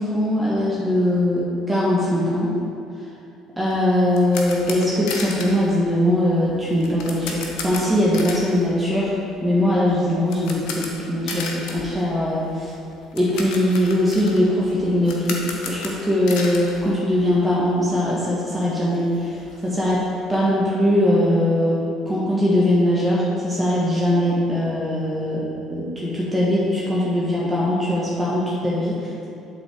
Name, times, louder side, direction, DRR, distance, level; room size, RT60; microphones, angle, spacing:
voice 1, 0.0-2.5 3.6-9.1 9.4-12.7 13.1-15.4 15.7-20.0 20.3-21.8 22.1-25.4 25.7-29.0, left 1 dB, 15° right, -6 dB, 1.5 m, -21 dB
sound 1, 3.7-17.7 17.9-18.1 18.5-18.6 18.8-20.4, left 4 dB, 60° left, 0.8 m, -35 dB
8.0 x 4.1 x 5.0 m, 2.5 s
figure-of-eight pair, 55°, 0 cm